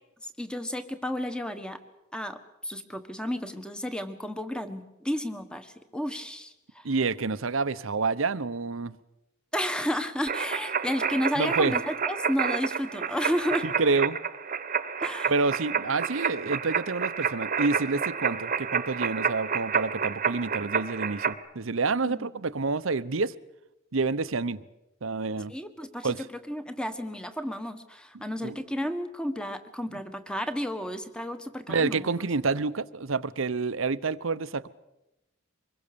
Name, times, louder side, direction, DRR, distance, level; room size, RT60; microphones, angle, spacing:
voice 1, 0.2-1.8 2.1-6.9 9.5-13.7 15.0-15.3 22.0-22.3 25.5-32.1, equal, 5° left, 1.4 m, -32 dB
voice 2, 6.8-9.0 11.4-11.7 13.8-14.2 15.3-23.3 23.9-24.6 25.0-25.5 26.0-26.3 28.4-28.5 31.7-34.7, right 4 dB, 70° right, 0.8 m, -28 dB
sound 1, 10.3-21.3, right 6 dB, 40° right, 1.2 m, -29 dB
25.0 x 21.5 x 6.9 m
head